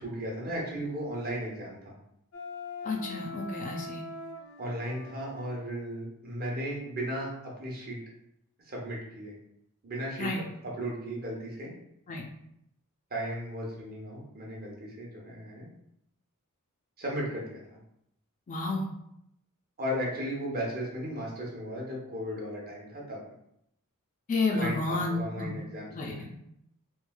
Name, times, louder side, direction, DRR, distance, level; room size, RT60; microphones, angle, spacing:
voice 1, 0.0-2.0 4.6-8.0 8.6-9.3 9.8-11.7 13.1-15.7 17.0-17.8 19.8-23.2 24.5-26.3, equal, 40° right, -3 dB, 0.8 m, -36 dB
Wind instrument woodwind instrument, 2.3-5.6, left 2 dB, 80° left, 0.6 m, -42 dB
voice 2, 2.8-4.0 10.2-10.4 12.1-12.2 18.5-18.9 24.3-25.7 25.9-26.3, left 3 dB, 35° left, 1 dB, 0.4 m, -31 dB
3.1 x 2.4 x 2.2 m, 0.77 s
head